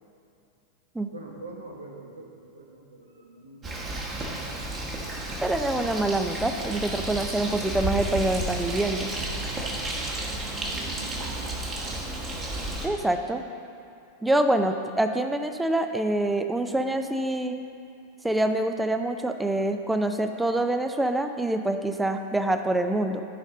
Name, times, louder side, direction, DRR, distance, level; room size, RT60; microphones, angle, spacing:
voice 1, 1.1-4.0 10.7-11.8, right 2 dB, 75° right, 1 dB, 1.2 m, -45 dB
Bird, 3.6-12.9, right 2 dB, 25° right, 1.5 m, -32 dB
voice 2, 5.4-9.1 12.8-13.4 14.2-17.6 18.2-23.2, right 1 dB, 5° right, 7 dB, 0.6 m, -26 dB
14.5 x 5.3 x 3.8 m, 2.6 s
figure-of-eight pair, 90°, 0 cm